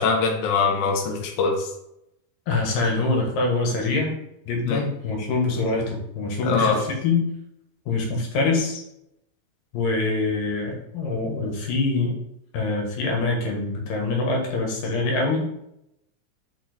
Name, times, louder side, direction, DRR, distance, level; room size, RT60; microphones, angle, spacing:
voice 1, 0.0-1.7 4.7-4.8 6.4-6.8, left 4 dB, 70° left, 1 dB, 2.3 m, -22 dB
voice 2, 2.5-4.1 4.5-7.2 7.9-8.8 9.7-12.1 12.5-15.4, left 3 dB, 90° left, 0 dB, 3.1 m, -24 dB
5.6 x 4.5 x 4.1 m, 0.80 s
omnidirectional pair, 3.8 m